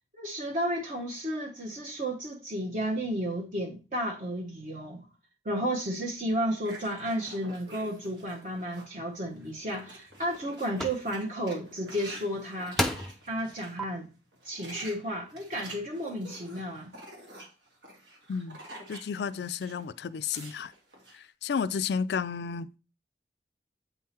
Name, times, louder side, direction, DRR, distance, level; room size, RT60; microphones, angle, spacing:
voice 1, 0.1-5.1 5.4-14.1 14.4-16.9, equal, 45° right, 1.0 m, -33 dB
sound 1, 6.6-9.0 9.4-13.7 14.3-19.8 20.1-21.2, right 1 dB, 90° right, 2.1 m, -48 dB
sound 2, 9.4-9.5 10.1-10.4 10.8-11.0 12.2-12.3 12.8-13.2 13.8-13.9, equal, ahead, 0.5 m, -30 dB
voice 2, 18.9-20.7 21.1-22.8, left 6 dB, 65° left, 0.3 m, -32 dB
8.1 x 3.7 x 4.3 m
head